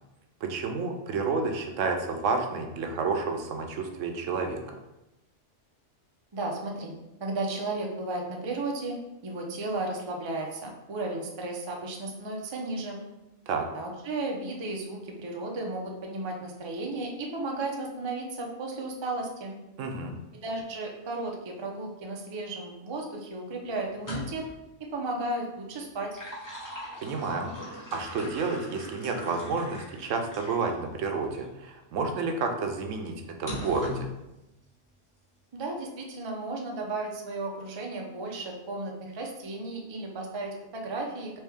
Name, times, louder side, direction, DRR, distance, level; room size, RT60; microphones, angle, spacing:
voice 1, 0.4-4.8 13.5-13.7 19.8-20.2 27.0-34.1, right 4 dB, 80° right, 4 dB, 0.9 m, -30 dB
voice 2, 6.3-6.9 7.2-9.0 9.2-13.0 13.7-19.6 20.4-24.4 24.9-26.2 35.5-41.4, right 2 dB, 40° right, 0 dB, 0.4 m, -34 dB
sound 1, 23.9-24.6 25.9-30.7 31.3-31.5 33.5-34.1, left 1 dB, 15° left, 0.9 m, -40 dB
3.2 x 3.1 x 3.4 m, 0.95 s
omnidirectional pair, 1.3 m